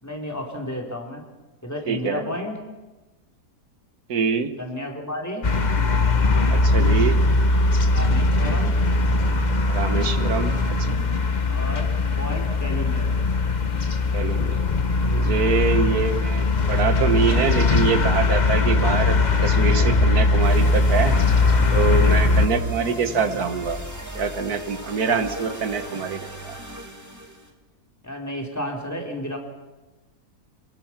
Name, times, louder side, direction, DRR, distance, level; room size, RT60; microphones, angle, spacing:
voice 1, 0.0-1.2 1.6-2.6 4.6-5.5 7.9-8.8 11.5-13.1 22.2-22.4 28.0-29.4, left 1 dB, 10° left, 2 dB, 3.6 m, -32 dB
voice 2, 1.9-2.3 4.1-4.5 6.5-7.2 9.7-11.1 14.1-14.6 15.0-21.2 21.7-23.8 24.2-26.6, right 6 dB, 65° right, 10 dB, 1.8 m, -25 dB
sound 1, 5.4-22.5, left 3 dB, 30° left, 1.2 m, -20 dB
sound 2, 20.4-27.5, right 1 dB, 10° right, 2.9 m, -37 dB
28.5 x 20.5 x 6.0 m, 1.1 s
omnidirectional pair, 1.7 m